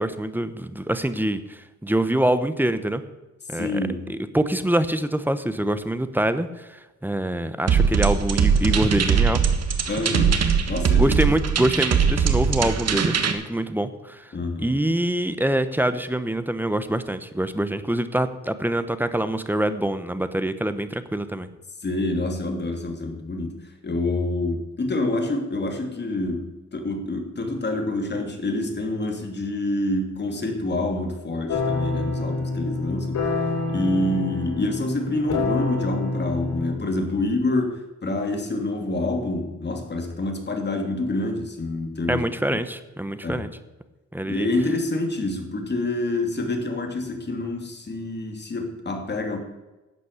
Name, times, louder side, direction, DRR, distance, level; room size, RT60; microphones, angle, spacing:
voice 1, 0.0-3.0 3.5-3.8 4.3-9.4 11.0-14.3 14.6-21.5 42.1-43.5 44.1-44.5, right 1 dB, 5° right, 11 dB, 1.0 m, -25 dB
voice 2, 3.5-4.1 9.9-11.4 14.3-14.7 21.8-33.3 33.7-42.6 43.2-43.5 44.2-49.4, left 2 dB, 35° left, 3 dB, 2.8 m, -27 dB
sound 1, 7.7-13.3, right 6 dB, 60° right, 1.6 m, -21 dB
sound 2, 31.5-36.7, left 3 dB, 85° left, 5.5 m, -27 dB
12.0 x 8.4 x 8.1 m, 1.1 s
cardioid pair, 115°, 30 cm